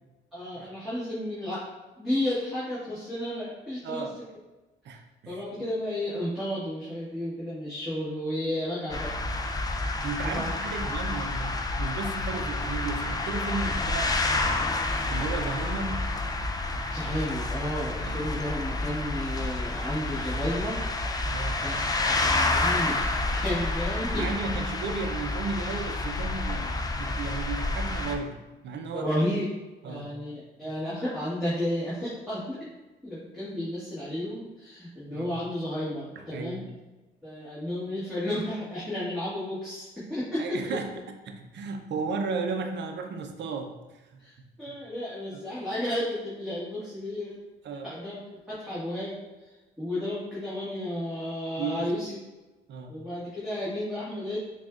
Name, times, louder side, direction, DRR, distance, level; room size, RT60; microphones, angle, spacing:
voice 1, 0.3-1.6 2.0-4.0 5.2-9.4 10.2-10.6 16.9-20.8 21.2-21.3 21.6-23.0 23.3-24.2 28.9-29.5 29.8-32.6 33.0-36.6 37.2-40.7 44.2-47.4 47.8-49.2 49.8-52.1 52.9-54.4, left 1 dB, ahead, -12 dB, 1.5 m, -32 dB
voice 2, 3.8-4.2 4.8-5.4 10.0-16.1 18.0-18.3 21.3-21.6 24.2-29.2 29.8-30.1 35.1-35.4 36.3-36.6 40.4-40.9 41.2-44.2 45.3-45.4 47.6-47.9 51.6-51.9 52.7-53.0, right 4 dB, 65° right, 5 dB, 0.6 m, -34 dB
sound 1, 8.9-28.2, left 2 dB, 20° left, 0.4 m, -29 dB
6.0 x 2.4 x 2.4 m, 1.1 s
cardioid pair, 90°, 20 cm